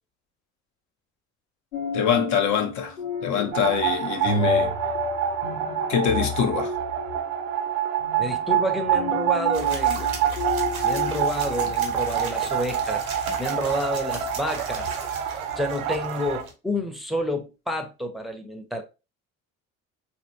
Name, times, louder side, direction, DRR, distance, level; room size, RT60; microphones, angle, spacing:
sound 1, 1.7-12.0, left 3 dB, 85° left, 0.9 m, -32 dB
voice 1, 1.9-3.0 3.2-4.7 5.9-6.7, left 7 dB, 45° left, 0.8 m, -24 dB
sound 2, 3.5-16.4, right 9 dB, 50° right, 0.6 m, -27 dB
voice 2, 8.2-10.1 10.8-14.9 15.3-18.8, equal, ahead, 0.7 m, -29 dB
sound 3, 9.5-16.5, right 1 dB, 85° right, 0.9 m, -37 dB
4.3 x 3.0 x 2.6 m
figure-of-eight pair, 55°, 42 cm